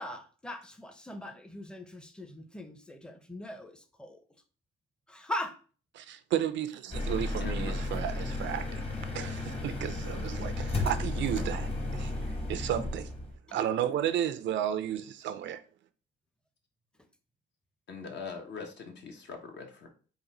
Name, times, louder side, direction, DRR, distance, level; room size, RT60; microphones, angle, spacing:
voice 1, 0.0-4.2 5.1-5.6 13.5-13.6 14.2-14.3, left 1 dB, 5° left, 0.6 m, -40 dB
voice 2, 6.0-8.8 9.1-12.1 12.5-13.1 13.5-15.6, right 10 dB, 70° right, 0.5 m, -33 dB
sound 1, 6.9-13.4, left 2 dB, 30° left, 1.1 m, -33 dB
voice 3, 7.4-7.7 17.9-19.9, left 5 dB, 60° left, 1.0 m, -42 dB
3.9 x 2.5 x 4.1 m
cardioid pair, 90°, 20 cm